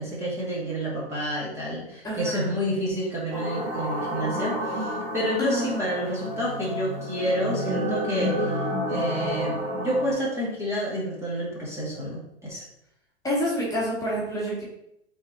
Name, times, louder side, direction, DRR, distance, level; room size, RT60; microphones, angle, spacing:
voice 1, 0.0-12.6, equal, 10° right, -6 dB, 2.1 m, -29 dB
voice 2, 2.0-2.5 5.4-5.9 13.2-14.6, equal, 10° left, -6 dB, 2.1 m, -28 dB
sound 1, 3.3-10.1, equal, 50° right, 2.3 m, -30 dB
8.3 x 4.2 x 2.8 m, 0.79 s
figure-of-eight pair, 105°, 33 cm